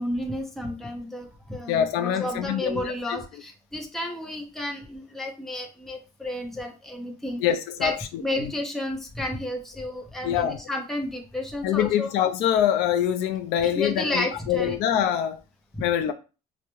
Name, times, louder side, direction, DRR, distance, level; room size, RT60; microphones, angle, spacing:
voice 1, 0.0-7.4 7.8-12.1 13.6-14.8 15.7-15.8, left 1 dB, ahead, 0.6 m, -32 dB
voice 2, 1.7-3.2 7.4-8.5 10.2-10.6 11.6-15.4 15.8-16.1, left 10 dB, 85° left, 0.4 m, -25 dB
4.6 x 2.0 x 3.0 m
cardioid pair, 150°, 17 cm